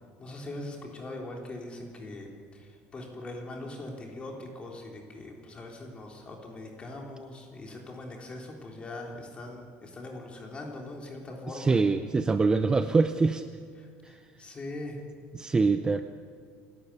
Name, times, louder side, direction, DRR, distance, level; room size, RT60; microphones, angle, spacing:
voice 1, 0.2-11.8 13.8-15.0, left 2 dB, 20° left, 1 dB, 3.5 m, -41 dB
voice 2, 11.5-13.4 15.3-16.0, right 4 dB, 15° right, 9 dB, 0.6 m, -24 dB
28.0 x 12.0 x 8.4 m, 2.1 s
cardioid pair, 150°, 5 cm